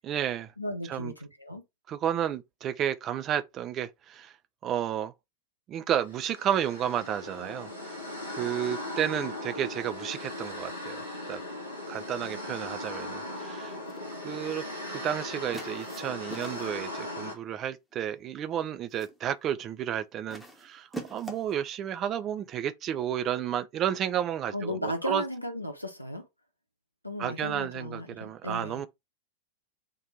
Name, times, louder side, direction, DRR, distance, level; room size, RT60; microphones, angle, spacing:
voice 1, 0.0-0.5 0.9-1.1 1.9-4.3 4.6-5.1 5.7-8.0 8.3-11.4 11.9-13.8 14.2-25.2 27.2-28.9, right 10 dB, 30° right, 0.4 m, -32 dB
voice 2, 0.6-1.6 24.5-26.2 27.0-28.8, equal, 90° left, 0.8 m, -35 dB
sound 1, 6.1-17.3, left 1 dB, 90° right, 1.8 m, -38 dB
sound 2, 13.7-14.1 15.5-16.9 17.9-18.2 18.6-19.2 20.3-21.6, right 2 dB, 5° right, 0.9 m, -44 dB
3.7 x 2.7 x 3.1 m
figure-of-eight pair, 90°, 0 cm